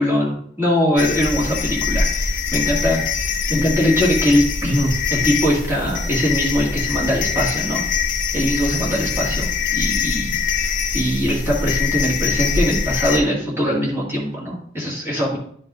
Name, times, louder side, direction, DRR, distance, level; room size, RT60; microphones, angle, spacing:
voice 1, 0.0-7.9 8.3-10.4 10.7-15.4, equal, 15° right, -5 dB, 1.9 m, -21 dB
sound 1, 1.0-13.2, left 5 dB, 50° left, 0.8 m, -23 dB
9.9 x 5.5 x 2.5 m, 0.64 s
head